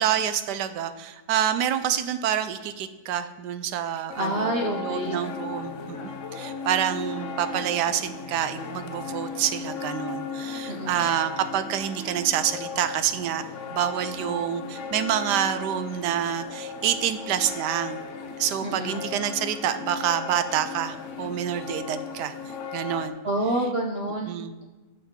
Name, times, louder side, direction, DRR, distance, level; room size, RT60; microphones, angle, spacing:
voice 1, 0.0-13.4 13.7-18.0 18.4-22.3 22.7-23.2 24.3-24.6, right 10 dB, 90° right, 11 dB, 1.2 m, -27 dB
sound 1, 4.1-23.1, left 4 dB, 55° left, 0.9 m, -36 dB
voice 2, 4.2-5.2 10.7-11.1 18.6-19.0 23.2-24.4, right 1 dB, 50° right, 2 dB, 0.8 m, -28 dB
9.0 x 6.4 x 3.6 m, 1.2 s
omnidirectional pair, 1.7 m